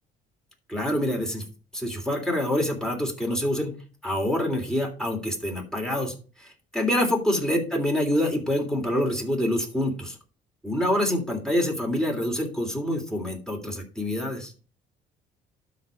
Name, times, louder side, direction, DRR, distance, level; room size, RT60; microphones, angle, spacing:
voice 1, 0.7-1.4 1.7-3.7 4.0-10.2 10.6-14.5, left 1 dB, 5° left, 0 dB, 3.2 m, -26 dB
12.5 x 4.2 x 5.2 m, 0.36 s
cardioid pair, 110°, 17 cm